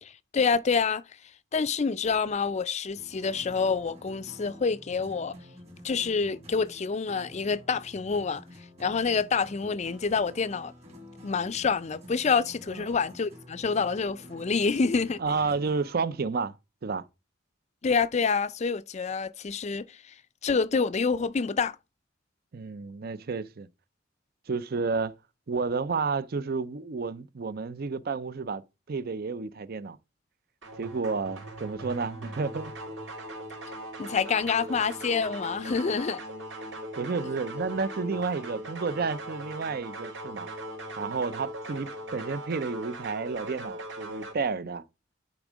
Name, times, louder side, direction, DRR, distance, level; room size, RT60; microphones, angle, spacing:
voice 1, 0.0-1.0 1.5-5.3 5.8-8.4 8.8-10.7 11.2-15.2 17.8-20.0 20.4-21.8 34.0-36.2, left 5 dB, 35° left, 0.4 m, -27 dB
sound 1, 2.9-16.1, equal, 35° right, 2.2 m, -49 dB
voice 2, 15.2-16.5 16.8-17.0 22.5-23.7 24.5-25.1 25.5-28.6 28.9-30.0 30.8-32.7 37.0-40.5 41.0-44.8, right 4 dB, 50° right, 0.5 m, -31 dB
sound 2, 30.6-44.3, right 1 dB, 70° right, 3.3 m, -39 dB
10.5 x 3.6 x 5.0 m
head